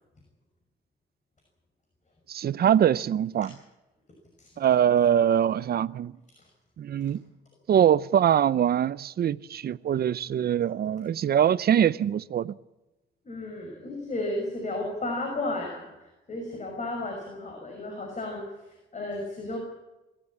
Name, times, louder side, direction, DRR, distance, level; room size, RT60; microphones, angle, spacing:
voice 1, 2.3-3.5 4.6-6.1 6.8-7.2 7.7-12.6, right 9 dB, 50° right, 0.6 m, -23 dB
voice 2, 13.2-19.6, left 2 dB, 35° left, 6.0 m, -33 dB
26.0 x 13.0 x 8.7 m
cardioid pair, 90°, 20 cm